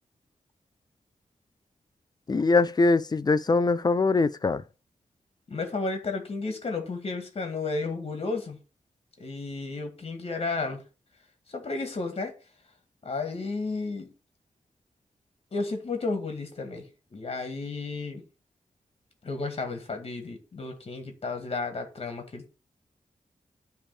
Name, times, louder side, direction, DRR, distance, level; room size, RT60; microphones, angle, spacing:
voice 1, 2.3-4.6, left 3 dB, 30° left, 0.5 m, -22 dB
voice 2, 5.5-8.6 9.2-10.8 11.5-12.3 13.0-14.1 15.5-16.9 17.1-18.2 19.2-22.5, left 3 dB, 45° left, 2.0 m, -32 dB
10.0 x 3.5 x 6.4 m
wide cardioid pair, 170°, 13 cm